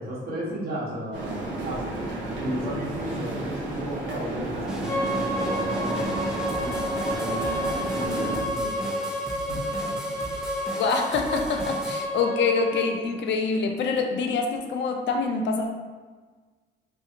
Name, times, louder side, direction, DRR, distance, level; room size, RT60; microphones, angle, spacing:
voice 1, 0.0-1.9 2.3-6.3 6.6-7.6 7.9-9.1 9.5-10.0, equal, 50° right, -5 dB, 1.0 m, -34 dB
sound 1, 1.1-8.4, right 2 dB, 80° right, 0.9 m, -32 dB
sound 2, 4.7-12.1, equal, 5° right, 0.3 m, -37 dB
Bowed string instrument, 4.8-12.9, equal, 80° left, 0.8 m, -30 dB
voice 2, 10.7-15.7, left 4 dB, 65° left, 3 dB, 0.4 m, -26 dB
2.6 x 2.4 x 2.7 m, 1.4 s
cardioid pair, 90°, 20 cm